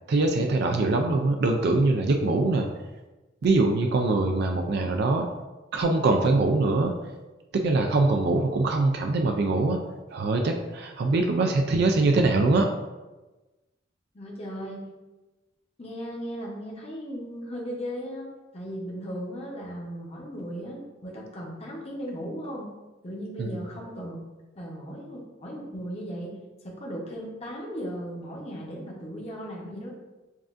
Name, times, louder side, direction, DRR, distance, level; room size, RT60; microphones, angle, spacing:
voice 1, 0.1-2.7 3.4-5.3 5.7-6.9 7.5-9.8 10.1-12.7 23.4-23.5, right 3 dB, 55° right, 4 dB, 0.4 m, -23 dB
voice 2, 14.1-14.9 15.8-22.7 23.0-24.2 24.5-26.4 26.6-29.9, equal, 30° left, -3 dB, 0.8 m, -37 dB
7.1 x 2.5 x 2.4 m, 1.1 s
head